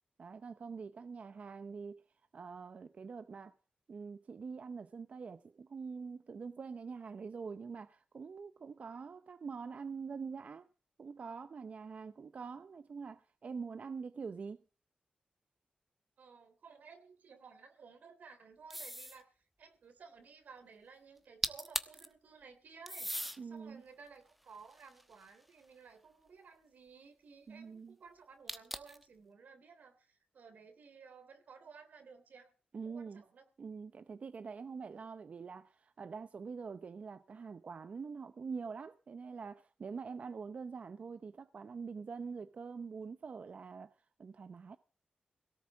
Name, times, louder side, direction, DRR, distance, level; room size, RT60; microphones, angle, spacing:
voice 1, 0.2-2.0 2.3-3.5 3.9-10.7 11.0-14.6 23.4-23.8 27.5-28.0 32.7-33.2 33.6-43.9 44.2-44.8, right 5 dB, 55° right, 0.7 m, -45 dB
voice 2, 16.2-32.5 32.8-33.4, right 5 dB, 90° right, 3.3 m, -56 dB
sound 1, 18.7-19.2 21.2-21.3 21.4-22.1 22.9-23.4 24.1-25.5 28.5-29.0, equal, 5° right, 1.1 m, -39 dB
17.5 x 7.5 x 7.3 m
wide cardioid pair, 130°, 3 cm